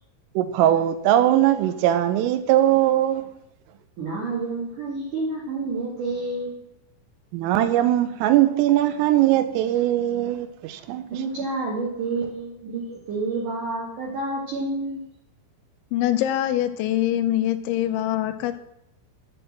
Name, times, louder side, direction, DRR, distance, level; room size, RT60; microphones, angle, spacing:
voice 1, 0.4-3.2 7.3-11.0, right 13 dB, 85° right, 3.4 m, -20 dB
voice 2, 4.0-6.5 11.1-15.0, right 3 dB, 50° right, 3.0 m, -29 dB
voice 3, 15.9-18.5, left 13 dB, 80° left, 2.8 m, -23 dB
11.0 x 8.1 x 7.4 m
omnidirectional pair, 5.9 m